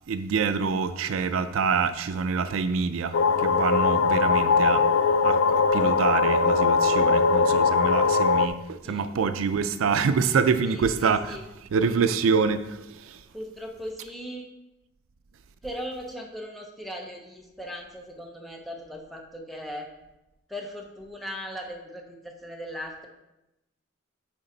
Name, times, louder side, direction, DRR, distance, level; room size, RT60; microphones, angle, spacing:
voice 1, 0.1-4.9 5.2-11.4 11.7-13.2, right 5 dB, 80° right, 0.4 m, -26 dB
sound 1, 3.1-8.5, left 4 dB, 75° left, 0.4 m, -21 dB
voice 2, 10.7-11.4 13.3-14.5 15.6-19.9 20.5-23.1, equal, ahead, 0.8 m, -38 dB
9.5 x 3.9 x 3.9 m
head